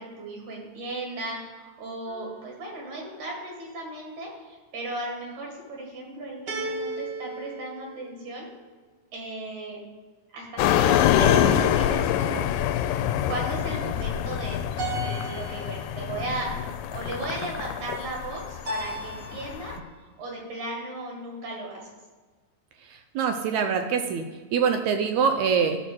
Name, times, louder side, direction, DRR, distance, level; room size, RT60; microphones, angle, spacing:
voice 1, 0.0-8.5 9.1-9.8 10.3-11.0 11.3-12.4 13.3-14.7 14.9-16.5 16.9-19.7 20.0-21.8, right 2 dB, 65° right, -1 dB, 3.2 m, -36 dB
sound 1, 2.1-2.7 6.5-8.5 11.2-12.6 14.8-16.0 18.6-19.6, right 2 dB, 45° right, 1.6 m, -36 dB
sound 2, 10.6-19.8, left 10 dB, 90° left, 2.2 m, -25 dB
voice 2, 23.2-24.2 24.5-25.8, right 6 dB, 80° right, 6 dB, 1.7 m, -24 dB
12.0 x 4.3 x 6.2 m, 1.4 s
omnidirectional pair, 3.8 m